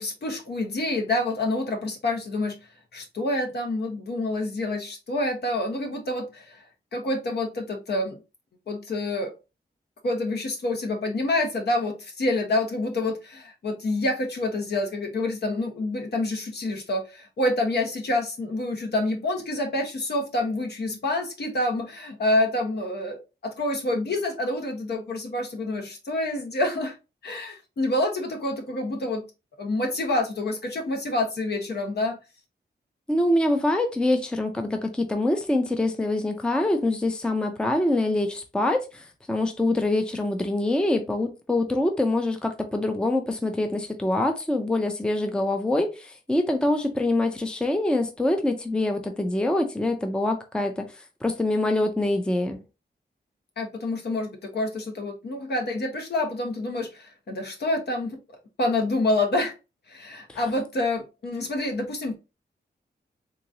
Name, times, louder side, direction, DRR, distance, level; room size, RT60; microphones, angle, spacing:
voice 1, 0.0-2.6 2.9-6.6 6.9-8.2 8.7-9.3 10.0-27.0 27.2-29.2 29.6-32.2 53.6-58.2 58.6-59.5 59.9-62.2, left 2 dB, 70° left, 1.1 m, -27 dB
voice 2, 33.1-50.9 51.2-52.6 60.3-60.4, left 1 dB, 5° left, 0.4 m, -25 dB
3.7 x 3.0 x 2.6 m
wide cardioid pair, 170°, 18 cm